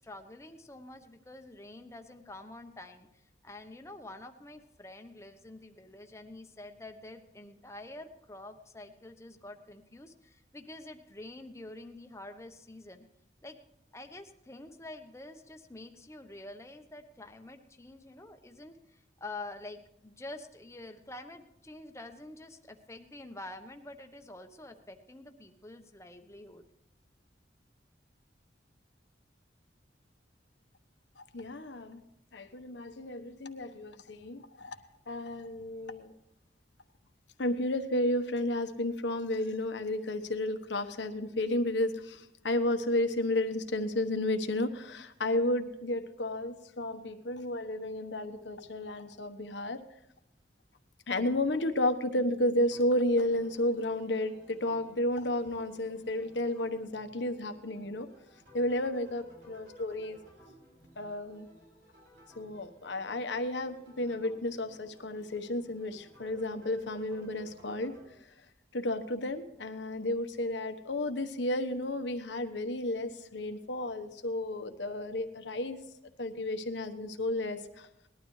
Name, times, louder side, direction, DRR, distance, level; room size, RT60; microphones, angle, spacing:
voice 1, 0.0-13.1 13.4-13.6 13.9-26.7, left 2 dB, 15° left, 6 dB, 1.0 m, -47 dB
voice 2, 31.2-32.0 32.3-34.8 35.1-36.1 37.4-49.8 51.1-58.1 58.5-60.2 61.0-61.5 62.4-67.9 68.2-68.3 68.7-75.8 76.2-77.9, left 1 dB, 85° left, 8 dB, 1.2 m, -32 dB
sound 1, 52.7-68.1, right 1 dB, 80° right, 5.6 m, -57 dB
19.5 x 12.0 x 3.2 m, 0.84 s
head